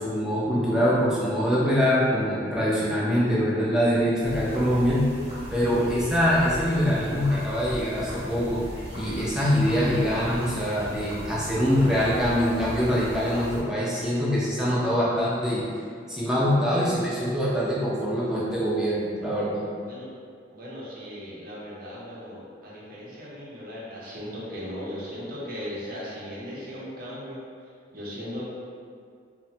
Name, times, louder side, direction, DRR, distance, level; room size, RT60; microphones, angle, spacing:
voice 1, 0.0-5.1 5.5-8.6 8.9-15.7 16.1-19.6, equal, 5° right, -8 dB, 0.5 m, -24 dB
sound 1, 4.2-13.6, equal, 30° right, 0.9 m, -38 dB
voice 2, 20.5-28.5, equal, 55° right, -7 dB, 0.7 m, -38 dB
2.9 x 2.2 x 2.7 m, 2.1 s
head